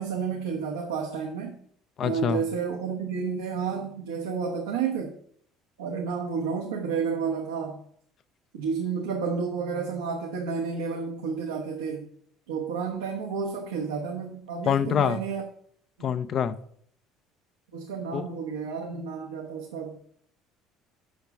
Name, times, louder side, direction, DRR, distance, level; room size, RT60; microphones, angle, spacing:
voice 1, 0.0-1.6 2.0-5.1 5.8-7.8 8.5-12.1 12.5-15.4 16.0-16.1 17.7-20.0, right 5 dB, 85° right, 1.1 m, -31 dB
voice 2, 2.0-2.4 14.6-15.2 16.0-16.6 18.1-18.2, left 8 dB, 50° left, 0.6 m, -25 dB
6.5 x 5.9 x 5.8 m
hypercardioid pair, 70°, 0 cm